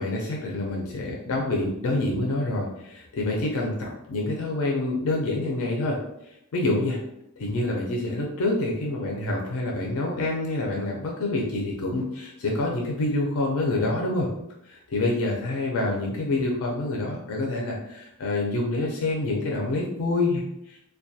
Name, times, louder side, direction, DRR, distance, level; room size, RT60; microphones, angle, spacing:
voice 1, 0.0-6.0 6.5-7.0 7.4-14.3 14.7-20.8, left 2 dB, 70° left, -1 dB, 0.4 m, -27 dB
2.2 x 2.2 x 2.6 m, 0.81 s
head